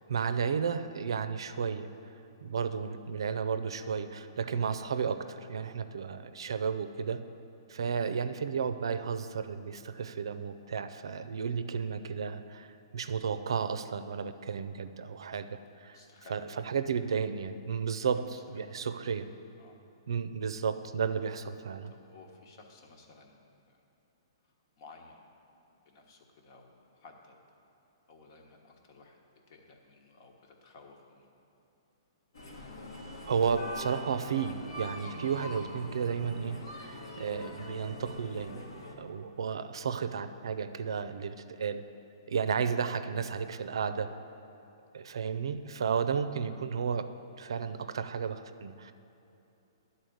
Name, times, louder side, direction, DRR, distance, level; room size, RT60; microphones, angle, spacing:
voice 1, 0.0-1.9 2.4-7.2 7.7-16.0 16.3-16.4 16.7-19.3 20.1-21.9 33.3-38.6 39.0-41.8 42.3-44.2 44.9-47.1 47.4-48.9, right 6 dB, 75° right, 11 dB, 0.5 m, -33 dB
voice 2, 15.8-16.7 18.0-18.9 19.6-19.8 21.9-23.8 24.4-25.3 25.8-27.4 28.1-29.2 29.5-31.3 44.5-44.8, left 3 dB, 50° left, 2 dB, 1.3 m, -56 dB
sound 1, 32.3-39.0, equal, 80° left, 1.5 m, -43 dB
10.5 x 4.2 x 7.8 m, 2.9 s
hypercardioid pair, 135°, 3 cm